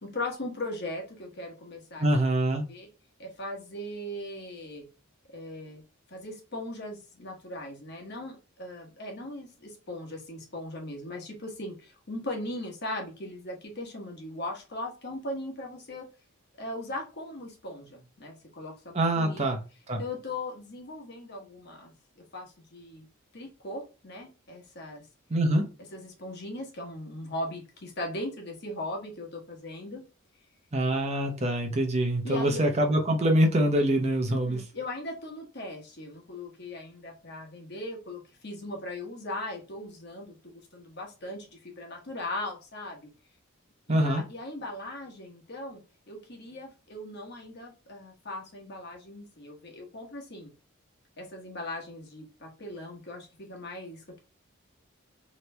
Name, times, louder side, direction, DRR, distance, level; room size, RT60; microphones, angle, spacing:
voice 1, 0.0-2.0 2.7-2.9 3.2-4.8 5.3-5.8 6.1-16.0 16.6-19.4 20.0-23.1 23.3-25.1 25.9-30.0 32.2-32.6 34.3-43.1 43.9-45.8 46.1-50.5 51.2-54.2, left 1 dB, 50° left, 1 dB, 1.2 m, -39 dB
voice 2, 2.0-2.6 18.9-19.6 19.9-20.0 25.3-25.6 30.7-34.6 43.9-44.2, right 1 dB, 30° right, 3 dB, 0.7 m, -24 dB
3.2 x 3.0 x 3.2 m, 0.31 s
head